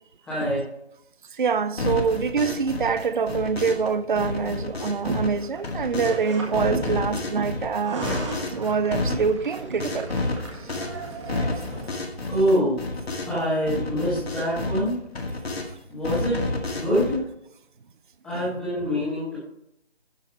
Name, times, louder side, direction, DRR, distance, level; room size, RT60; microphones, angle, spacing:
voice 1, 0.2-0.7 12.2-12.8 13.3-15.0 15.9-17.3 18.2-19.4, equal, ahead, 1.1 m, -25 dB
voice 2, 1.4-8.2 8.5-10.1, right 5 dB, 50° right, 0.6 m, -25 dB
sound 1, 1.8-3.9 4.2-6.2 6.5-13.4 13.7-15.7 16.0-17.2, left 2 dB, 70° left, 2.0 m, -30 dB
sound 2, 5.4-6.8 7.7-11.9, right 3 dB, 25° right, 1.7 m, -38 dB
12.0 x 5.6 x 4.5 m
figure-of-eight pair, 165°, 32 cm